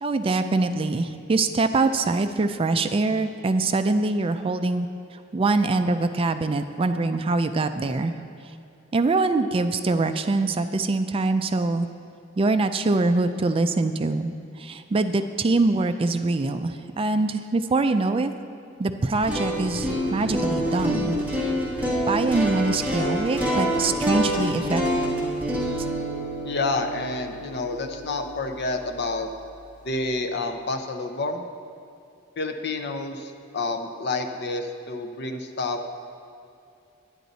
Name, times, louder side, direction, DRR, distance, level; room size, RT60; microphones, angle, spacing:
voice 1, 0.0-4.9 5.3-8.1 8.9-11.9 12.4-14.3 14.6-18.3 18.8-21.2 22.1-25.1, right 3 dB, 30° right, 9 dB, 0.3 m, -24 dB
sound 1, 19.1-29.1, equal, 10° right, 1.7 m, -27 dB
voice 2, 26.5-29.3 29.8-31.4 32.4-35.8, left 3 dB, 60° left, 5 dB, 0.7 m, -29 dB
10.0 x 10.0 x 4.0 m, 2.6 s
head